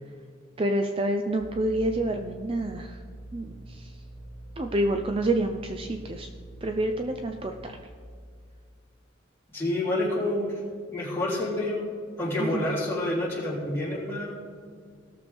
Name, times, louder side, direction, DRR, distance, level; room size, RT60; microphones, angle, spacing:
voice 1, 0.6-3.0 3.3-3.9 4.6-6.3 6.6-7.8 12.4-12.7, right 1 dB, 25° right, 5 dB, 0.5 m, -28 dB
sound 1, 1.4-7.6, right 1 dB, 30° left, 1.9 m, -44 dB
voice 2, 9.5-10.6 10.9-11.8 12.2-14.4, left 1 dB, 10° left, -8 dB, 3.2 m, -28 dB
17.5 x 6.8 x 3.5 m, 2.1 s
head